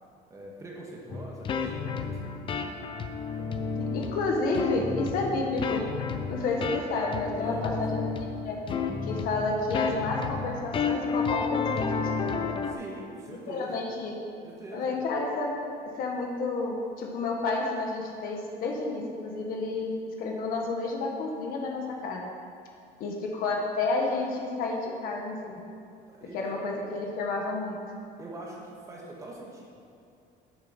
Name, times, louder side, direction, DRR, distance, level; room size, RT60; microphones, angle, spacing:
voice 1, 0.3-2.7 3.3-3.8 7.3-8.2 12.7-13.8 14.4-14.9 26.1-26.4 28.2-29.7, right 2 dB, 20° right, -3 dB, 1.5 m, -43 dB
sound 1, 1.1-12.7, left 5 dB, 30° left, 0.5 m, -31 dB
voice 2, 3.8-5.8 6.3-8.1 8.4-8.6 9.0-12.4 13.3-14.1 14.7-15.5 16.0-22.2 23.0-25.6 26.3-27.8, left 3 dB, 60° left, 1 dB, 1.5 m, -30 dB
8.8 x 6.9 x 5.9 m, 2.5 s
cardioid pair, 165°, 16 cm